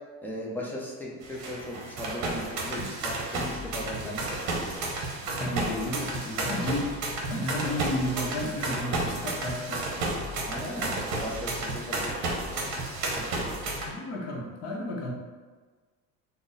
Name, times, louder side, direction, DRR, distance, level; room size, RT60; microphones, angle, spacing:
voice 1, 0.2-4.9 10.4-12.6, equal, 5° left, -4 dB, 0.4 m, -38 dB
sound 1, 1.2-13.9, right 2 dB, 65° right, 0.8 m, -32 dB
voice 2, 5.2-10.3 13.1-15.1, left 1 dB, 50° left, -1 dB, 0.7 m, -33 dB
3.8 x 2.0 x 3.8 m, 1.4 s
cardioid pair, 170°, 32 cm